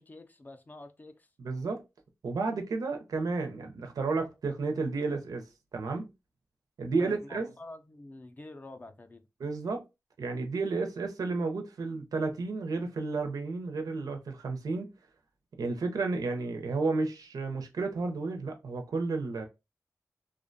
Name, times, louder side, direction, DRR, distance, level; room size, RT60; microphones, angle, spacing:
voice 1, 0.0-1.3 6.8-9.2, left 2 dB, 30° left, 0.4 m, -47 dB
voice 2, 1.4-1.8 2.2-5.4 5.7-6.1 6.8-7.5 9.4-9.8 10.2-14.9 15.6-19.4, right 3 dB, 85° right, 0.5 m, -32 dB
2.5 x 2.1 x 2.5 m
wide cardioid pair, 105°, 6 cm